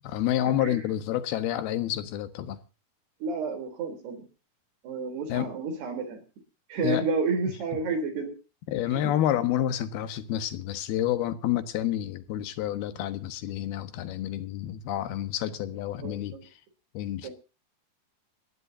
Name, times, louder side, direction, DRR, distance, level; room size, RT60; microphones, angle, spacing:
voice 1, 0.0-2.6 5.3-5.5 6.8-7.0 8.7-16.4 16.9-17.3, left 12 dB, 75° left, 3.2 m, -29 dB
voice 2, 3.2-4.3 4.8-6.2 6.7-8.3 8.9-9.1 16.0-16.4 17.2-17.3, right 4 dB, 90° right, 5.6 m, -31 dB
28.5 x 11.0 x 2.7 m
omnidirectional pair, 4.5 m